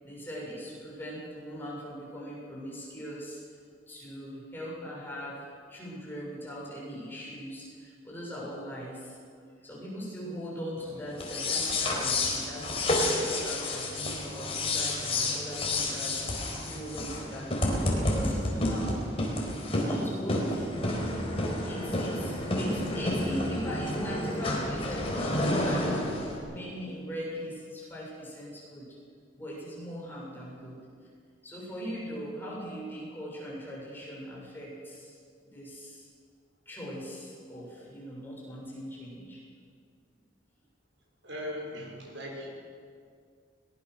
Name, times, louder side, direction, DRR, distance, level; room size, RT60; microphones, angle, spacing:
voice 1, 0.0-3.4 3.9-5.4 5.7-9.2 9.6-19.0 19.8-20.7 21.6-26.0 26.5-28.9 29.4-30.8 31.4-35.2 35.5-36.1 36.6-39.4, equal, 10° left, -5 dB, 6.8 m, -40 dB
sound 1, 11.1-26.4, left 1 dB, 30° left, 4.2 m, -30 dB
voice 2, 41.2-42.5, left 1 dB, 80° right, 0 dB, 6.0 m, -38 dB
22.0 x 19.5 x 6.5 m, 2.2 s
head